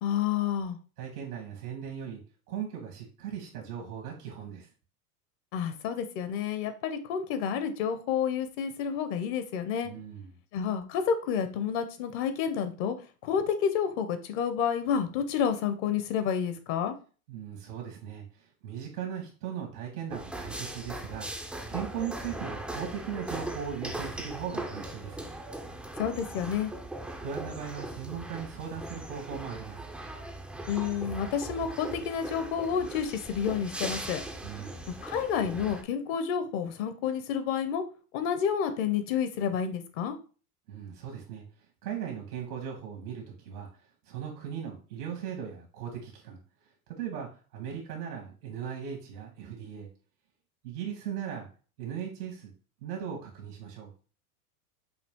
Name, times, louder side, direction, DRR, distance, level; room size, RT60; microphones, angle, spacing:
voice 1, 0.0-0.8 5.5-9.9 10.5-13.0 13.2-16.9 26.0-26.7 30.7-34.2 34.9-37.8 38.1-40.2, left 7 dB, 55° left, 10 dB, 0.8 m, -30 dB
voice 2, 1.0-2.2 2.5-4.7 9.8-10.3 17.3-25.3 27.2-29.8 34.4-34.9 40.7-41.4 41.8-43.7 44.0-46.4 46.9-49.9 50.6-51.5 51.8-52.5 52.8-53.9, right 8 dB, 80° right, 0 dB, 1.5 m, -38 dB
sound 1, 20.1-35.8, right 1 dB, ahead, 0.3 m, -39 dB
5.7 x 2.5 x 3.6 m, 0.37 s
hypercardioid pair, 105°, 46 cm